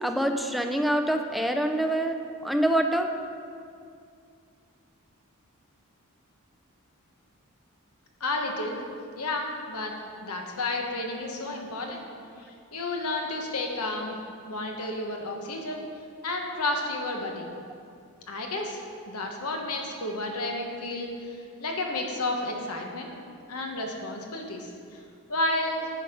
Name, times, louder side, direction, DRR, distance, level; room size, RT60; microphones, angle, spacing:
voice 1, 0.0-3.1, right 1 dB, ahead, 5 dB, 0.3 m, -26 dB
voice 2, 8.2-8.8 9.1-9.9 10.2-12.0 12.4-14.2 14.5-15.8 16.2-17.5 18.3-18.8 19.1-23.1 23.5-25.0 25.3-25.9, left 2 dB, 90° left, 2 dB, 1.2 m, -31 dB
10.5 x 5.5 x 5.2 m, 2.4 s
head